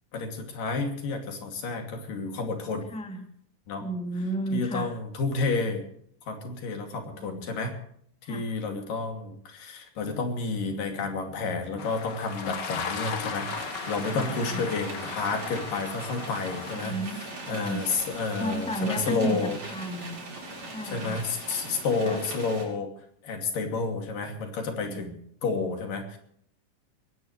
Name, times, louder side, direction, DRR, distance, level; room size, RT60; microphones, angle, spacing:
voice 1, 0.1-2.9 3.7-3.9 4.5-5.8 6.3-7.8 8.3-19.6 20.8-22.9 23.2-25.1 25.4-26.2, left 4 dB, 80° left, 4 dB, 4.3 m, -30 dB
voice 2, 2.9-3.3 3.8-4.9 7.1-7.7 8.2-8.4 14.1-14.7 16.7-17.2 17.5-17.8 18.4-20.3 20.7-21.2 22.0-22.2 24.9-25.2, right 1 dB, ahead, 3 dB, 2.0 m, -33 dB
sound 1, 11.8-16.8, left 5 dB, 45° left, 1.5 m, -36 dB
sound 2, 13.5-22.7, right 2 dB, 55° right, 6.3 m, -40 dB
21.0 x 18.0 x 3.3 m, 0.65 s
omnidirectional pair, 3.8 m